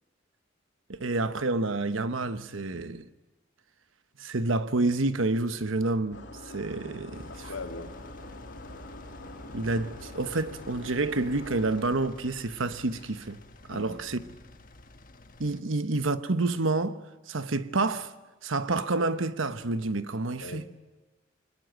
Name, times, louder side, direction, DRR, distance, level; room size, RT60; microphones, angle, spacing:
voice 1, 0.9-3.1 4.2-6.2 6.5-7.5 9.5-13.4 13.7-14.2 15.4-17.0 17.3-18.1 18.4-20.6, right 2 dB, 80° right, 1.1 m, -28 dB
sound 1, 6.1-11.9, left 2 dB, 60° left, 3.0 m, -45 dB
Engine, 7.1-15.6, left 1 dB, 40° left, 1.6 m, -49 dB
voice 2, 7.3-7.9 13.7-14.2 20.4-20.8, left 2 dB, 90° left, 2.6 m, -40 dB
24.5 x 21.5 x 9.1 m
head